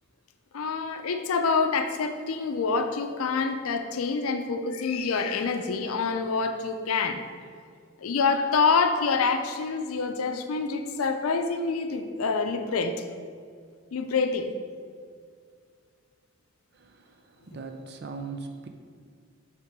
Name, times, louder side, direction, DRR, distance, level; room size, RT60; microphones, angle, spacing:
voice 1, 0.5-7.2 8.0-12.9 13.9-14.5, left 4 dB, 85° left, 7 dB, 0.5 m, -26 dB
voice 2, 17.5-18.7, right 4 dB, 50° right, 5 dB, 0.5 m, -38 dB
5.8 x 3.6 x 6.0 m, 2.1 s
head